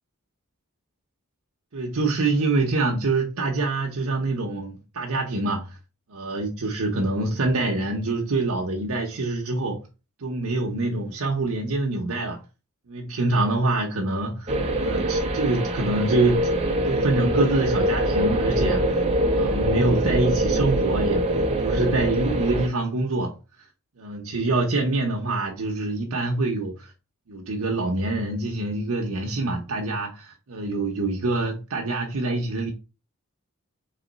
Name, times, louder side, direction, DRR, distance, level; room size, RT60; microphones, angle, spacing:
voice 1, 1.7-5.8 6.1-9.8 10.2-12.4 12.9-16.5 16.8-19.0 19.3-23.7 24.0-26.9 27.3-32.7, right 2 dB, 75° right, 0.8 m, -25 dB
sound 1, 14.5-22.7, right 1 dB, 30° right, 0.8 m, -24 dB
4.1 x 3.0 x 3.9 m
head